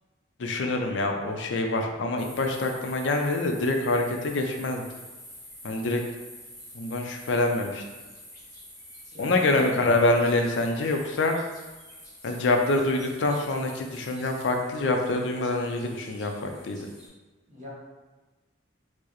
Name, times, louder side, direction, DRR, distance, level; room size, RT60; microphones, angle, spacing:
voice 1, 0.4-4.9 5.6-6.0 6.7-7.8 9.2-11.3 12.2-16.9, left 2 dB, 75° left, 3 dB, 0.4 m, -26 dB
sound 1, 2.2-17.1, equal, 20° left, 1.0 m, -48 dB
voice 2, 9.1-9.5 17.5-17.7, left 1 dB, 35° right, -7 dB, 1.1 m, -41 dB
4.6 x 2.1 x 2.9 m, 1.2 s
head